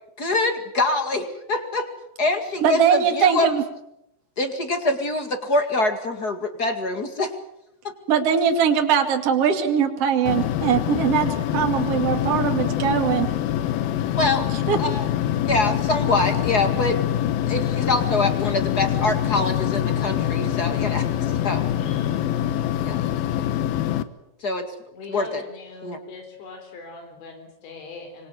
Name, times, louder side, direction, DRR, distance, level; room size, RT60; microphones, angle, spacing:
voice 1, 0.2-1.9 2.2-3.5 4.4-7.3 14.1-14.4 14.8-15.1 15.4-17.0 17.5-21.6 22.8-23.0 24.4-24.6 25.1-25.4 25.8-26.0, left 2 dB, 40° left, 7 dB, 1.4 m, -24 dB
voice 2, 2.6-3.6 8.1-13.3 14.7-14.8, right 7 dB, 40° right, 5 dB, 2.9 m, -21 dB
sound 1, 10.3-24.0, left 11 dB, 70° left, 2.6 m, -24 dB
voice 3, 21.8-22.3 24.9-28.3, left 3 dB, 85° left, 4 dB, 6.2 m, -40 dB
26.0 x 24.5 x 7.9 m, 0.84 s
omnidirectional pair, 5.0 m